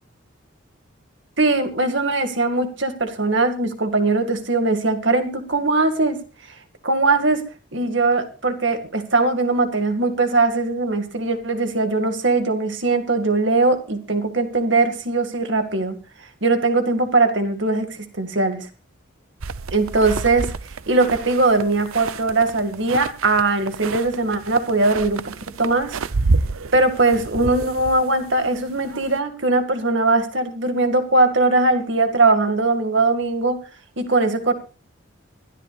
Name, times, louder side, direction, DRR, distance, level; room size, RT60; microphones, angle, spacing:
voice 1, 1.4-6.2 6.8-7.4 7.7-16.0 16.4-18.7 19.7-20.5 20.9-26.0 26.7-33.6 34.0-34.5, right 3 dB, 60° right, 7 dB, 2.1 m, -20 dB
sound 1, 19.4-29.2, right 3 dB, 85° right, 0.7 m, -29 dB
23.0 x 12.5 x 2.5 m, 0.34 s
head